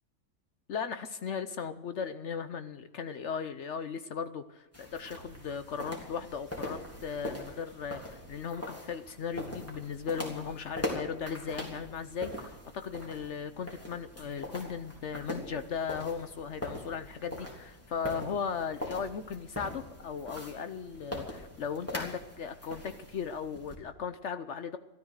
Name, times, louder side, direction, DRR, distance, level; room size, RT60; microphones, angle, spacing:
voice 1, 0.7-24.8, left 6 dB, 60° left, 11 dB, 1.0 m, -37 dB
sound 1, 4.7-23.7, left 1 dB, 10° left, 3.4 m, -42 dB
15.0 x 13.0 x 6.5 m, 1.0 s
omnidirectional pair, 1.4 m